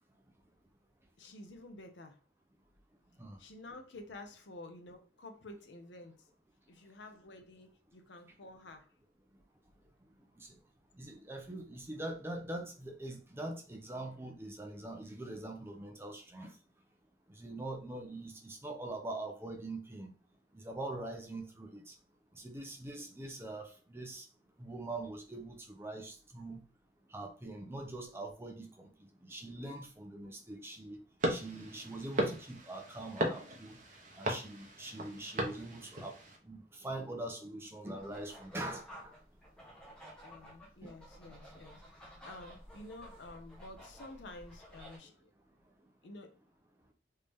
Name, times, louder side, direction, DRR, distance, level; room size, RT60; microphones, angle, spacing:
voice 1, 1.2-2.2 3.4-6.2 6.7-8.9 40.2-41.8 42.2-45.3 46.0-46.3, left 2 dB, 80° left, 0.7 m, -50 dB
voice 2, 11.0-16.5 17.4-20.1 20.5-21.9 22.4-24.2 24.6-26.6 27.1-28.7 29.2-31.0 31.3-33.8 34.2-36.1 36.4-39.1 40.8-40.9, right 2 dB, 15° right, 0.5 m, -43 dB
sound 1, 31.2-36.4, right 1 dB, 45° right, 0.8 m, -37 dB
sound 2, 37.9-45.0, equal, 5° left, 1.0 m, -54 dB
3.3 x 2.7 x 3.4 m
head